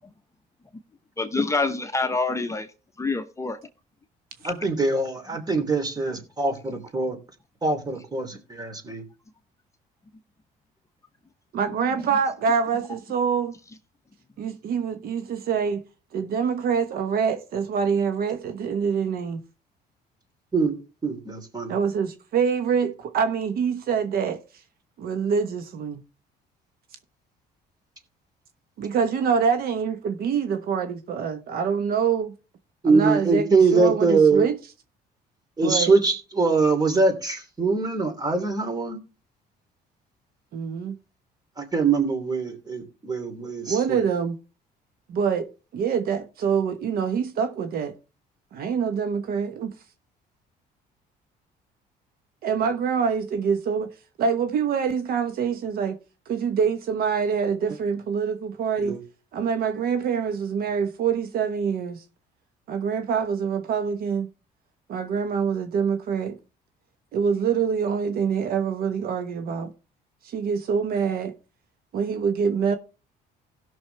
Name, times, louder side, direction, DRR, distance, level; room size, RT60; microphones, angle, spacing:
voice 1, 1.2-2.7 3.0-3.6 4.4-4.5, left 3 dB, 15° left, 0.9 m, -26 dB
voice 2, 4.4-7.2 7.6-9.0 20.5-20.7 21.0-21.8 32.8-34.5 35.6-39.0 41.6-44.0 58.8-59.0, right 4 dB, 25° right, 2.9 m, -23 dB
voice 3, 11.5-13.6 14.4-15.8 16.1-19.4 21.7-24.4 25.0-26.0 28.8-32.3 32.8-34.5 35.6-35.9 40.5-41.0 43.7-44.4 45.1-45.5 45.7-47.9 48.5-49.7 52.4-53.9 54.2-56.0 56.3-59.0 59.3-62.0 62.7-64.3 64.9-66.4 67.1-69.7 70.2-71.3 71.9-72.8, right 6 dB, 65° right, 1.1 m, -25 dB
17.0 x 6.2 x 3.3 m
cardioid pair, 110°, 17 cm